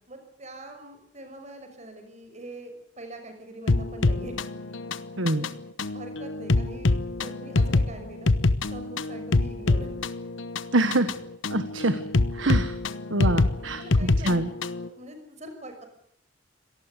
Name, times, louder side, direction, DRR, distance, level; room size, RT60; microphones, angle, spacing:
voice 1, 0.1-4.4 5.3-5.5 5.8-8.3 8.7-9.9 11.0-11.1 13.4-14.4 14.8-15.9, right 1 dB, 40° right, 6 dB, 5.9 m, -43 dB
sound 1, 3.7-14.9, left 2 dB, 90° left, 1.1 m, -25 dB
voice 2, 5.2-5.5 10.7-11.1 11.5-12.0 12.3-12.7 13.1-14.5, right 2 dB, 90° right, 10 dB, 1.5 m, -25 dB
26.0 x 18.5 x 8.2 m, 0.69 s
head